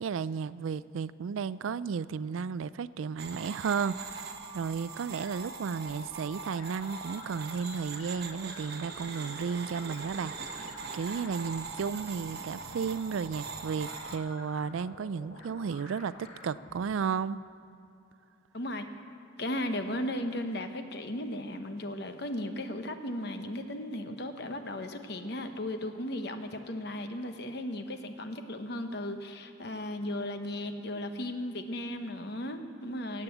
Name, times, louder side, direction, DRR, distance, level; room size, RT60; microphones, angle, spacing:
voice 1, 0.0-17.4, right 6 dB, 80° right, 18 dB, 0.4 m, -33 dB
sound 1, 3.2-14.2, right 4 dB, 50° right, 1.0 m, -42 dB
sound 2, 3.6-16.9, left 2 dB, 90° left, 1.6 m, -51 dB
voice 2, 18.5-18.9 19.4-33.2, left 1 dB, 55° left, 7 dB, 1.0 m, -36 dB
17.0 x 8.5 x 7.9 m, 2.6 s
head